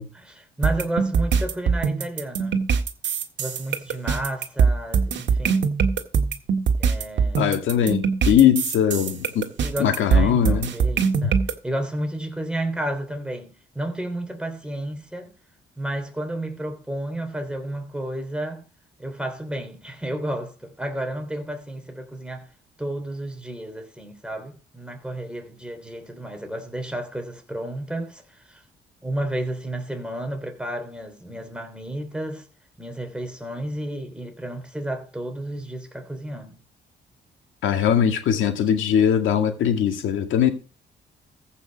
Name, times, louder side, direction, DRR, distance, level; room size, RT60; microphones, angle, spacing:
voice 1, 0.1-2.6 3.4-5.7 6.8-7.5 9.5-15.3 15.8-18.6 19.0-22.5 22.8-28.6 29.0-32.5 32.8-36.6, right 1 dB, 5° right, 3.3 m, -32 dB
sound 1, 0.6-11.5, right 6 dB, 65° right, 1.7 m, -22 dB
voice 2, 7.4-9.4 9.8-10.7 11.2-11.3 37.6-40.5, left 9 dB, 80° left, 2.0 m, -20 dB
15.0 x 5.8 x 5.2 m
cardioid pair, 90°, 20 cm